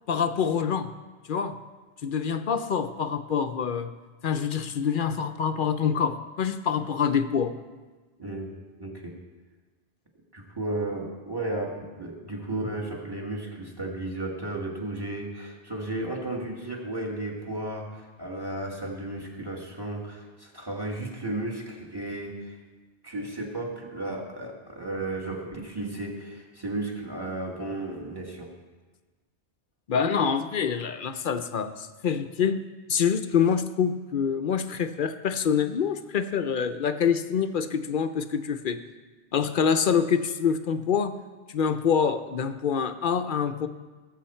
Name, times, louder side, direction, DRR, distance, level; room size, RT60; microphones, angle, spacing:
voice 1, 0.1-0.9 1.3-1.6 2.0-3.9 4.2-7.5 29.9-38.8 39.3-41.2 41.5-43.7, left 7 dB, 55° left, 9 dB, 0.6 m, -26 dB
voice 2, 8.2-8.5 8.8-9.2 10.3-22.6 23.0-28.5, right 2 dB, 20° right, -1 dB, 1.8 m, -34 dB
18.5 x 7.6 x 4.3 m, 1.3 s
omnidirectional pair, 1.2 m